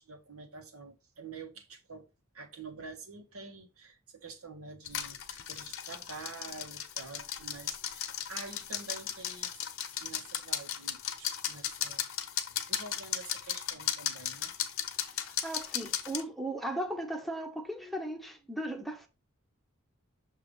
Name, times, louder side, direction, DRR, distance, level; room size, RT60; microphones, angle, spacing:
voice 1, 0.0-2.1 2.3-9.5 10.0-12.0 12.7-14.5, right 4 dB, 85° right, 1.3 m, -47 dB
sound 1, 4.8-16.2, left 10 dB, 70° left, 0.9 m, -36 dB
voice 2, 15.1-19.1, right 1 dB, ahead, 0.7 m, -37 dB
6.6 x 2.9 x 5.1 m
head